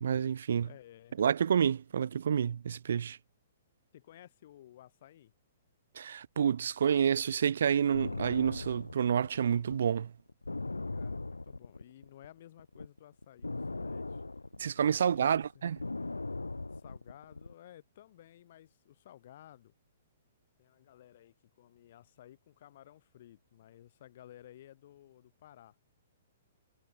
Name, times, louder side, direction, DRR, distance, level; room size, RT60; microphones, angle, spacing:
voice 1, 0.0-0.7 1.2-3.2 6.0-10.1 14.6-15.8, right 8 dB, 65° right, 0.4 m, -29 dB
voice 2, 0.6-1.2 3.9-5.3 10.9-14.2 14.9-15.6 16.7-19.7 20.6-25.8, left 12 dB, 55° left, 7.6 m, -55 dB
sound 1, 7.9-12.3 12.6-17.5, left 3 dB, 90° left, 0.8 m, -39 dB
figure-of-eight pair, 120°, 0 cm